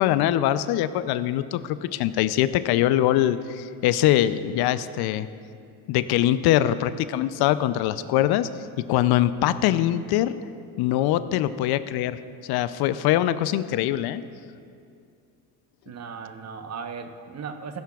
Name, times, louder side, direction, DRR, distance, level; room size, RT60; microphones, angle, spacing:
voice 1, 0.0-5.3 5.9-8.5 8.9-10.4 10.8-14.2, left 13 dB, 60° left, 14 dB, 0.5 m, -23 dB
voice 2, 15.9-17.8, right 5 dB, 35° right, 7 dB, 1.0 m, -37 dB
16.0 x 10.5 x 2.4 m, 2.4 s
supercardioid pair, 80°, 44 cm